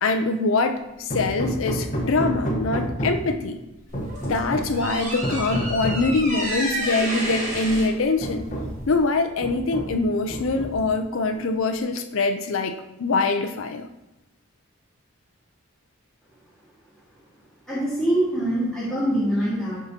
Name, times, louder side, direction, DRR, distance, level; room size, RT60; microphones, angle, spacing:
voice 1, 0.0-3.6 4.3-8.4 8.9-13.9, left 3 dB, 65° left, 6 dB, 0.5 m, -24 dB
Hammer, 1.1-3.4 3.9-4.8 5.2-6.1 7.2-7.3 7.7-7.8 8.2-8.9 9.4-10.0 10.3-11.0, equal, 35° left, 1.0 m, -29 dB
sound 1, 3.9-9.1, right 1 dB, 35° right, 1.6 m, -31 dB
voice 2, 17.7-19.8, right 1 dB, 5° left, -10 dB, 1.7 m, -24 dB
12.5 x 4.7 x 2.8 m, 0.93 s
head